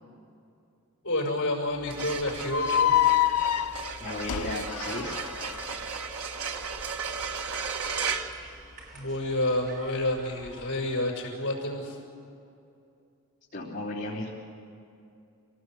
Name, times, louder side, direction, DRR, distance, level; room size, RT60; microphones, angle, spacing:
voice 1, 1.0-3.1 8.9-12.0, left 1 dB, 55° left, 0 dB, 6.1 m, -29 dB
sound 1, 1.7-9.2, right 5 dB, 70° right, 1.5 m, -35 dB
sound 2, 2.1-10.8, right 1 dB, 40° right, 4.7 m, -50 dB
sound 3, 2.5-5.7, left 11 dB, 85° left, 0.5 m, -26 dB
voice 2, 4.0-5.2 13.5-14.3, left 1 dB, 40° left, -10 dB, 3.5 m, -34 dB
28.0 x 18.5 x 7.9 m, 2.6 s
head